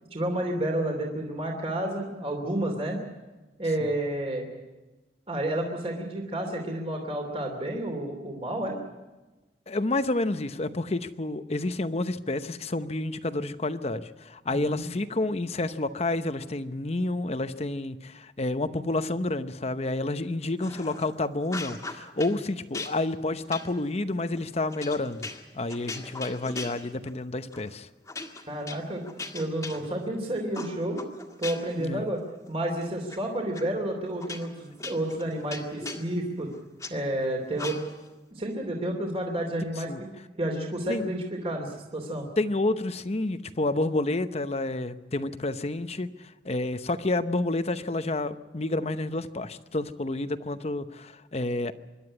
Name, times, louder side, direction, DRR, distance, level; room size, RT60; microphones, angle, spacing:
voice 1, 0.1-3.0 3.6-4.5 5.3-8.8 14.5-14.8 28.5-29.0 29.3-31.0 31.4-32.2 32.5-36.5 36.9-37.8 38.3-40.1 40.4-42.3, right 1 dB, 35° right, 2 dB, 3.0 m, -30 dB
voice 2, 9.7-27.9 31.8-32.0 39.9-40.0 40.9-41.1 42.4-51.7, left 2 dB, 35° left, 11 dB, 0.8 m, -29 dB
sound 1, 20.6-21.1 21.4-22.4 22.7-27.2 27.5-27.7 28.1-30.2 30.5-31.8 32.2-33.2 33.5-33.6 34.2-36.9 37.6-38.1, left 3 dB, 20° left, 1.9 m, -40 dB
25.5 x 11.5 x 9.8 m, 1.1 s
head